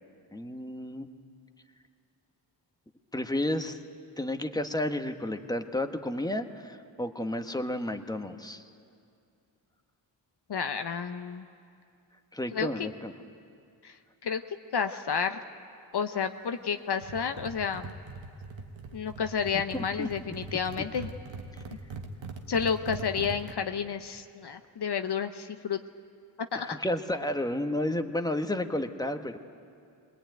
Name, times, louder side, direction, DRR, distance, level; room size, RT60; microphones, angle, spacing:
voice 1, 0.3-1.1 3.1-3.8 4.2-8.6 12.3-13.1 19.7-20.1 26.5-29.4, left 1 dB, 10° left, 6 dB, 1.4 m, -32 dB
voice 2, 10.5-11.5 12.5-12.9 13.8-14.0 14.2-14.4 14.7-15.4 15.9-17.9 18.9-21.1 22.5-25.8 26.5-26.8, left 6 dB, 55° left, 8 dB, 0.9 m, -31 dB
sound 1, 17.0-23.5, right 4 dB, 70° right, 1.6 m, -42 dB
20.5 x 20.0 x 9.3 m, 2.4 s
cardioid pair, 40°, 46 cm